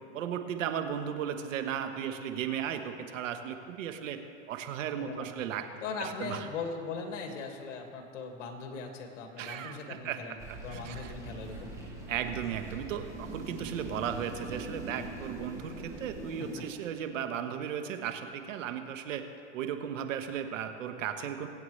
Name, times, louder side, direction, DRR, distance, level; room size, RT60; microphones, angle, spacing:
voice 1, 0.1-4.2 4.5-5.7 6.0-6.5 9.4-10.4 10.7-11.1 12.1-19.2 19.5-21.5, right 9 dB, 80° right, 7 dB, 1.2 m, -35 dB
voice 2, 5.0-5.4 5.8-11.7, left 4 dB, 70° left, 3 dB, 2.0 m, -39 dB
sound 1, 10.4-16.7, right 2 dB, 10° right, 2.1 m, -42 dB
22.5 x 8.7 x 3.2 m, 2.6 s
supercardioid pair, 140°, 38 cm